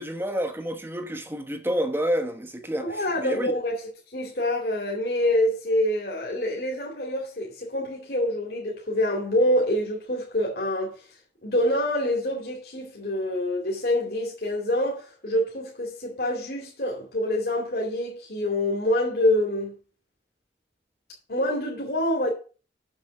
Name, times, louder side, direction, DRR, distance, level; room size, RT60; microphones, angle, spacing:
voice 1, 0.0-3.5, equal, 15° right, 1.0 m, -29 dB
voice 2, 2.8-3.8 4.1-10.9 11.4-19.8 21.3-22.3, left 1 dB, 60° left, 2.6 m, -26 dB
7.4 x 7.1 x 6.5 m
head